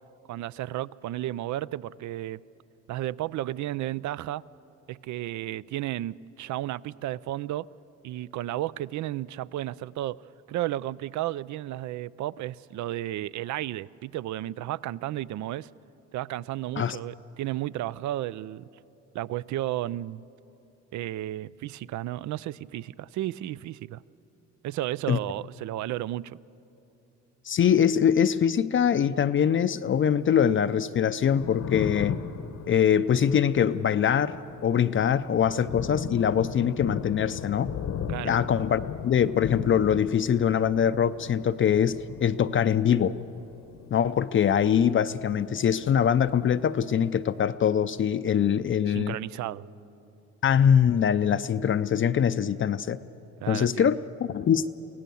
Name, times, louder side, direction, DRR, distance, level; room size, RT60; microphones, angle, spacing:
voice 1, 0.3-2.4 2.9-4.4 4.9-7.7 8.0-10.2 10.5-15.7 16.1-18.7 19.1-20.2 20.9-24.0 24.6-26.4 38.1-38.3 48.9-49.6 53.4-53.9, right 14 dB, 70° right, 0.5 m, -33 dB
voice 2, 27.5-32.1 32.7-37.7 38.2-43.2 43.9-49.2 50.4-53.0 53.5-54.0 54.3-54.7, left 8 dB, 40° left, 0.5 m, -23 dB
Thunder, 31.1-45.6 45.8-47.1, left 7 dB, 65° left, 1.0 m, -38 dB
24.0 x 16.5 x 7.0 m
cardioid pair, 90°, 30 cm